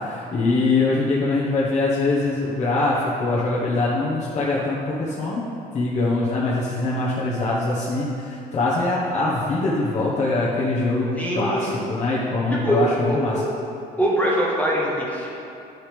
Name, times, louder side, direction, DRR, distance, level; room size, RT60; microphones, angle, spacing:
voice 1, 0.0-5.4 5.7-13.3, left 2 dB, 45° left, -6 dB, 1.3 m, -23 dB
voice 2, 11.2-11.8 12.5-12.8 13.1-13.4 14.0-15.3, equal, 10° left, -5 dB, 1.3 m, -23 dB
10.0 x 6.6 x 3.4 m, 2.7 s
cardioid pair, 110°, 17 cm